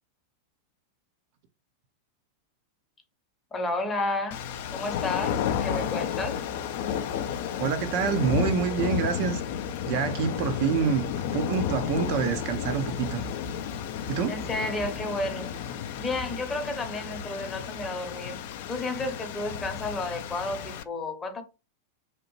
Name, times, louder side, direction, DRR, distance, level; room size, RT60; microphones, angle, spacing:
voice 1, 3.5-4.4 4.7-6.4 14.3-15.5 16.0-18.4 18.7-21.4, left 2 dB, 15° left, 0.7 m, -32 dB
sound 1, 4.3-20.8, left 8 dB, 50° left, 0.3 m, -32 dB
voice 2, 7.6-9.4 9.9-11.1 11.3-13.2 14.1-14.4, right 7 dB, 45° right, 0.4 m, -27 dB
2.8 x 2.0 x 2.9 m
figure-of-eight pair, 90°, 0 cm